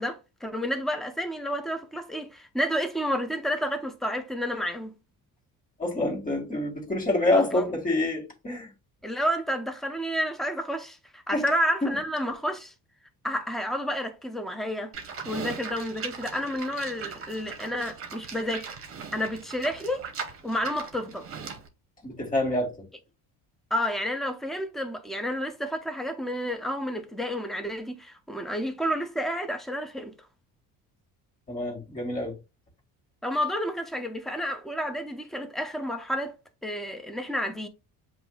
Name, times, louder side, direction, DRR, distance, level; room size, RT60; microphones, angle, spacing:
voice 1, 0.0-4.9 7.3-7.7 9.0-12.7 13.2-14.9 15.2-18.7 19.1-20.0 20.4-21.3 23.7-30.1 33.2-36.4 36.6-37.7, equal, ahead, 0.6 m, -30 dB
voice 2, 5.8-8.7 11.3-11.4 11.8-12.0 22.0-22.7 31.5-32.4, left 2 dB, 20° left, 1.8 m, -27 dB
Livestock farm animals working animals, 14.9-21.7, right 6 dB, 35° right, 1.0 m, -39 dB
7.7 x 2.6 x 2.3 m
cardioid pair, 125°, 37 cm